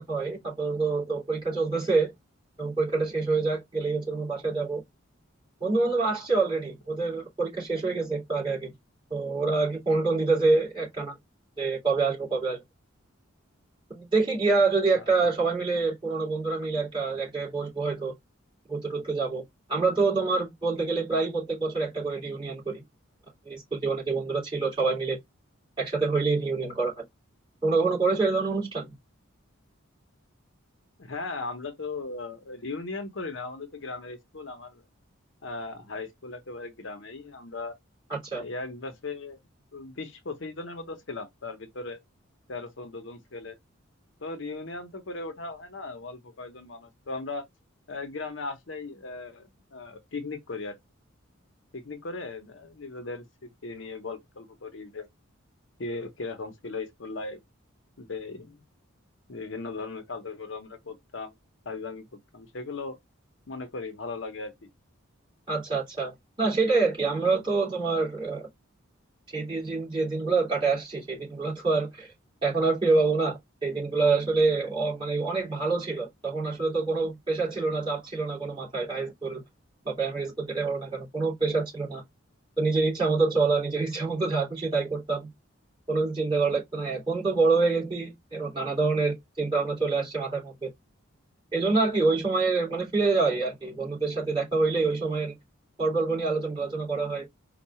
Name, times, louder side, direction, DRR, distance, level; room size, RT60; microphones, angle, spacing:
voice 1, 0.0-2.1 2.6-4.8 5.6-8.7 9.1-11.1 11.6-12.6 13.9-18.1 18.7-19.4 19.7-22.8 23.5-25.2 25.8-27.0 27.6-28.9 38.1-38.4 65.5-68.5 69.3-72.1 72.4-79.4 79.9-82.0 82.6-85.3 85.9-90.7 91.5-95.4 95.8-97.3, right 3 dB, 25° right, 2.5 m, -26 dB
voice 2, 31.0-34.8 35.4-37.7 38.4-39.4 39.7-42.0 42.5-43.6 44.2-47.5 47.9-50.8 51.7-55.1 55.8-57.4 58.0-58.6 59.3-61.3 61.6-62.1 62.3-63.0 63.5-64.7, left 3 dB, 60° left, 0.8 m, -37 dB
4.6 x 2.3 x 4.2 m
head